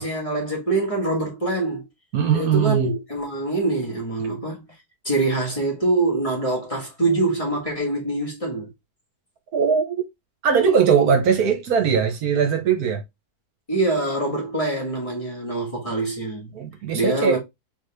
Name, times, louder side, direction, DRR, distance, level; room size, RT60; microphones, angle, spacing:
voice 1, 0.0-1.8 2.3-4.6 5.0-8.7 13.7-16.5 16.9-17.4, right 2 dB, 20° left, 1.4 m, -24 dB
voice 2, 2.1-2.9 9.5-10.0 10.4-13.0 16.5-17.4, right 6 dB, 70° right, 1.3 m, -20 dB
3.7 x 3.6 x 3.2 m
omnidirectional pair, 1.7 m